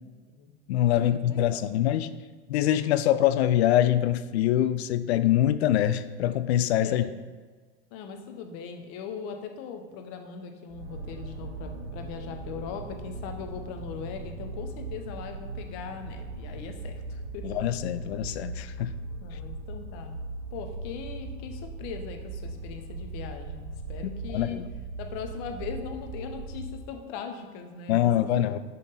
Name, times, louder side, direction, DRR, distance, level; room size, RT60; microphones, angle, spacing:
voice 1, 0.0-0.5 1.0-1.7 6.8-7.2 7.9-17.6 19.2-20.2 20.5-24.6 25.0-28.5, left 6 dB, 50° left, 5 dB, 1.0 m, -40 dB
voice 2, 0.7-2.1 2.5-7.1 17.4-18.9 24.3-24.7 27.9-28.6, left 12 dB, 75° left, 13 dB, 0.6 m, -24 dB
sound 1, 10.7-27.0, right 3 dB, 85° right, 1.1 m, -39 dB
10.5 x 3.6 x 4.1 m, 1.4 s
hypercardioid pair, 120°, 33 cm